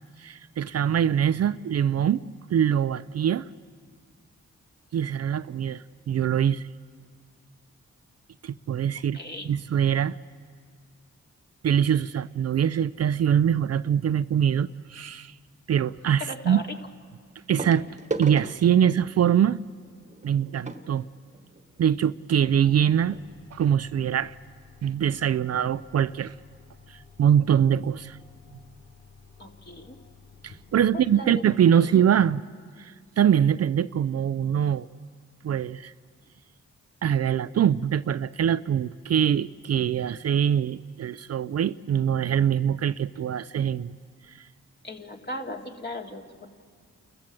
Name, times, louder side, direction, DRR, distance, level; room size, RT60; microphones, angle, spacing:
voice 1, 0.2-2.2 2.5-3.4 4.9-6.7 8.4-9.2 9.5-10.2 11.6-15.3 15.7-16.6 17.5-17.9 18.2-19.6 20.2-21.1 21.8-23.2 23.5-24.3 24.8-26.3 26.9-28.2 30.4-32.4 32.8-34.9 35.4-35.9 37.0-44.0 44.3-44.5, right 9 dB, 55° right, 0.5 m, -23 dB
voice 2, 9.1-9.5 16.2-16.6 29.4-30.0 30.7-31.3 31.7-31.9 44.8-46.5, left 1 dB, 35° left, 2.5 m, -37 dB
sound 1, 16.0-16.1 17.6-22.0 22.8-22.9 23.1-23.3 23.8-23.9, right 2 dB, 25° right, 1.4 m, -38 dB
sound 2, 22.4-31.1, left 5 dB, 60° left, 2.4 m, -53 dB
28.5 x 14.5 x 7.5 m
cardioid pair, 55°, 31 cm